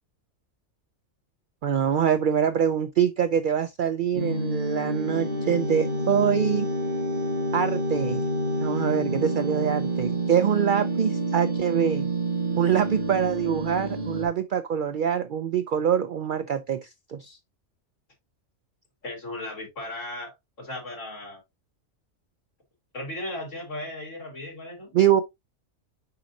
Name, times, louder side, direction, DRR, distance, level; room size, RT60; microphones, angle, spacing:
voice 1, 1.6-6.7 7.5-8.2 8.6-12.1 12.6-17.4 24.9-25.2, right 8 dB, 85° right, 0.4 m, -24 dB
sound 1, 4.1-14.3, right 1 dB, 40° right, 1.8 m, -28 dB
voice 2, 19.0-21.4 22.9-24.9, left 1 dB, 65° left, 3.4 m, -36 dB
6.8 x 5.1 x 2.7 m
omnidirectional pair, 1.4 m